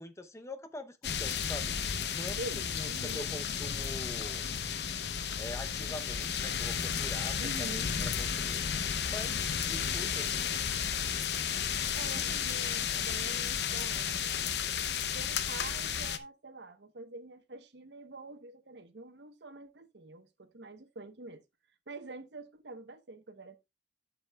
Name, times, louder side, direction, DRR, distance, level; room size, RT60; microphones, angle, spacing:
voice 1, 0.0-1.7 2.1-4.5 5.4-8.6 9.1-10.5, left 1 dB, 15° left, 0.7 m, -44 dB
sound 1, 1.0-16.2, left 7 dB, 70° left, 0.7 m, -33 dB
voice 2, 2.4-3.3 7.4-7.9 12.0-14.2 15.0-21.4 21.9-23.6, right 2 dB, 80° right, 1.0 m, -46 dB
10.5 x 7.2 x 2.3 m
head